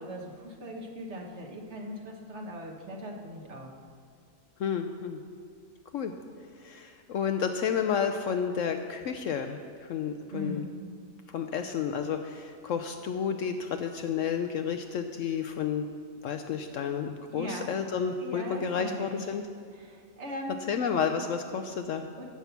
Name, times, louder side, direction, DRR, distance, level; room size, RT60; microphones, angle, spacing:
voice 1, 0.0-3.7 10.3-10.7 17.3-17.7 18.2-19.2 19.7-20.6 22.2-22.3, equal, 50° right, 1 dB, 1.4 m, -39 dB
voice 2, 4.6-5.2 5.9-6.1 6.6-10.6 11.3-15.8 16.2-19.4 20.7-22.1, left 7 dB, 70° left, 7 dB, 0.8 m, -31 dB
15.0 x 5.7 x 5.8 m, 2.2 s
omnidirectional pair, 1.6 m